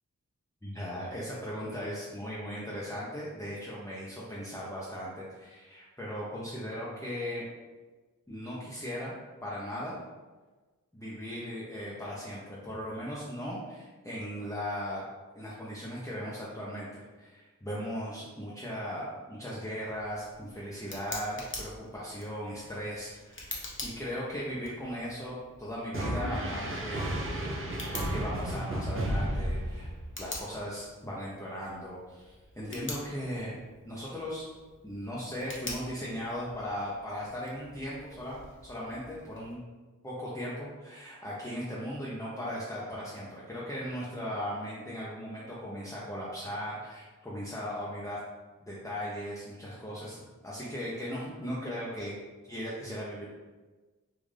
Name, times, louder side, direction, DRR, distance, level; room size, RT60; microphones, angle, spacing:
voice 1, 0.6-7.4 8.3-9.1 9.4-10.0 10.9-15.0 15.3-23.5 23.8-27.5 28.1-29.9 30.2-33.5 33.8-34.5 34.8-39.6 40.0-48.2 48.6-52.1 52.5-53.3, equal, 10° left, -7 dB, 0.7 m, -38 dB
Tick, 19.9-39.5, left 2 dB, 35° left, 0.9 m, -46 dB
sound 1, 25.9-30.2, right 1 dB, 40° right, 0.7 m, -32 dB
3.6 x 2.5 x 3.3 m, 1.3 s
wide cardioid pair, 50°, 34 cm